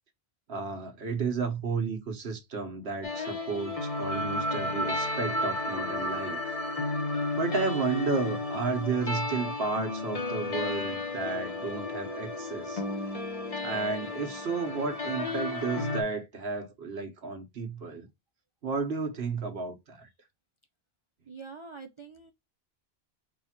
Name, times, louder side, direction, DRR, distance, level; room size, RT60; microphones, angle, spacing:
voice 1, 0.5-6.4 7.3-12.8 13.6-18.1 18.6-20.1, right 4 dB, 70° right, 1.3 m, -32 dB
sound 1, 3.0-16.0, left 2 dB, 35° left, 0.9 m, -33 dB
voice 2, 21.3-22.3, right 4 dB, 45° right, 0.4 m, -45 dB
4.9 x 2.4 x 4.3 m
omnidirectional pair, 1.1 m